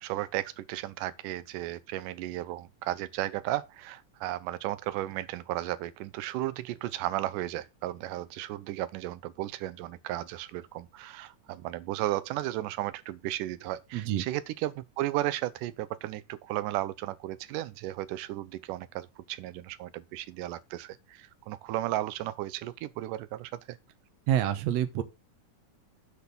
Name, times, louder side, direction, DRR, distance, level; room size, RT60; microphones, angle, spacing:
voice 1, 0.0-23.8, right 15 dB, 90° right, 2.2 m, -34 dB
voice 2, 13.9-14.3 24.3-25.0, right 11 dB, 70° right, 2.0 m, -27 dB
8.0 x 4.1 x 6.9 m
omnidirectional pair, 3.6 m